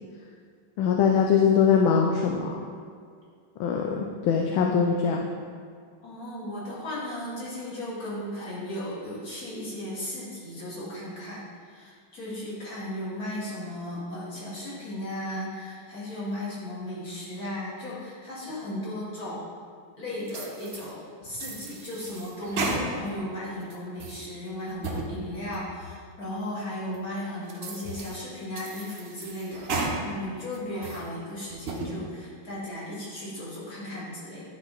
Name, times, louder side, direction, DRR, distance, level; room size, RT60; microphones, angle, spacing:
voice 1, 0.8-2.5 3.6-5.2, left 6 dB, 80° left, 1 dB, 1.3 m, -22 dB
voice 2, 6.0-19.4 20.0-34.4, left 1 dB, 45° left, -8 dB, 2.4 m, -36 dB
sound 1, 20.3-20.9 21.3-23.2 23.6-24.2 24.7-25.1 25.5-25.6 26.2-26.3 26.9-27.0 27.5-28.2 28.6-30.0 30.4-31.1 31.5-31.9, right 3 dB, 75° right, 0.5 m, -34 dB
10.0 x 4.2 x 4.0 m, 2.2 s
omnidirectional pair, 2.2 m